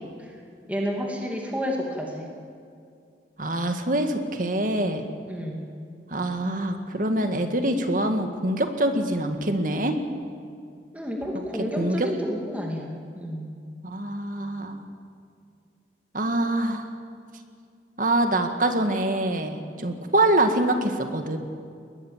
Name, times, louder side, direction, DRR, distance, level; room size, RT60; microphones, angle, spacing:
voice 1, 0.7-2.3 5.3-5.7 10.9-12.9 13.1-13.5, equal, 10° right, -1 dB, 2.6 m, -30 dB
voice 2, 3.4-5.0 6.1-10.0 11.8-12.1 13.8-14.9 16.1-16.9 18.0-21.4, right 1 dB, 50° right, 6 dB, 1.8 m, -25 dB
22.0 x 20.0 x 7.4 m, 2.3 s
head